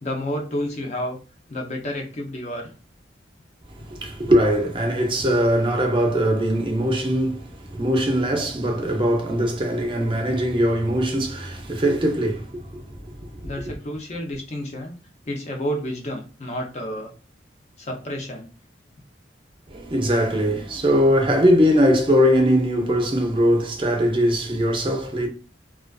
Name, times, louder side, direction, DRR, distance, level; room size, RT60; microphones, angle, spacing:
voice 1, 0.0-1.2 1.5-2.7 13.4-14.9 15.3-17.1 17.8-18.5, equal, 35° left, 0.5 m, -30 dB
voice 2, 3.7-13.7 19.7-25.3, equal, 25° right, 0.5 m, -21 dB
2.3 x 2.3 x 2.2 m
head